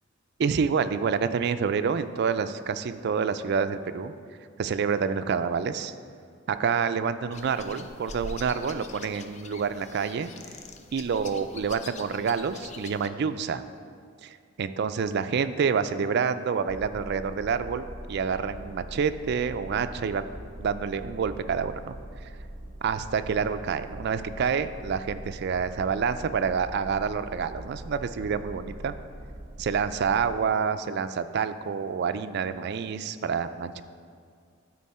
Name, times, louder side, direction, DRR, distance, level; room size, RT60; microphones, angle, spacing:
voice 1, 0.4-4.1 4.6-5.9 6.5-10.3 10.9-13.6 14.2-20.3 20.6-22.0 22.8-29.0 29.6-33.8, right 6 dB, 55° right, 10 dB, 0.4 m, -28 dB
sound 1, 7.3-13.1, left 3 dB, 35° left, 0.4 m, -44 dB
sound 2, 16.7-30.4, right 1 dB, 35° right, 0.7 m, -42 dB
12.0 x 4.6 x 4.3 m, 2.2 s
head